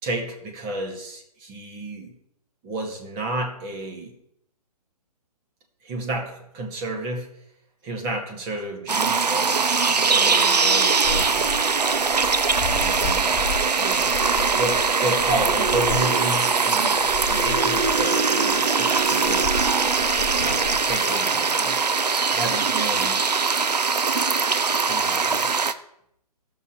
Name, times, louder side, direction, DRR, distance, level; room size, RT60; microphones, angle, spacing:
voice 1, 0.0-2.2 2.6-4.1 5.8-7.4 7.8-11.5 12.2-12.3 12.7-13.4 13.8-14.1 14.5-17.0 17.3-19.5 20.4-21.8 22.3-23.2 24.9-25.5, right 1 dB, 25° right, 2 dB, 1.9 m, -31 dB
sound 1, 8.9-25.7, right 4 dB, 80° right, 0.8 m, -21 dB
sound 2, 11.0-21.7, left 3 dB, 25° left, 1.1 m, -34 dB
17.0 x 6.3 x 4.4 m, 0.76 s
figure-of-eight pair, 130°, 20 cm